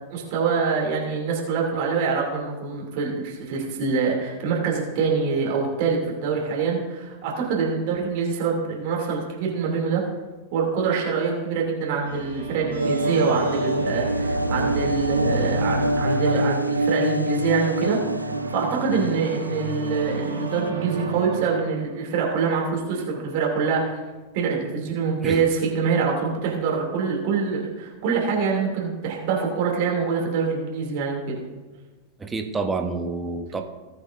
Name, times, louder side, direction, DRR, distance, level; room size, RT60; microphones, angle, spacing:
voice 1, 0.1-10.0 10.5-23.9 24.3-31.3, right 5 dB, 50° right, -2 dB, 2.7 m, -25 dB
sound 1, 12.0-22.1, right 3 dB, 70° right, 1.8 m, -33 dB
sound 2, 12.8-20.7, right 1 dB, 85° right, 0.4 m, -26 dB
voice 2, 32.2-33.6, right 3 dB, 15° right, 6 dB, 0.9 m, -28 dB
18.5 x 8.1 x 2.6 m, 1.3 s
figure-of-eight pair, 90°, 0 cm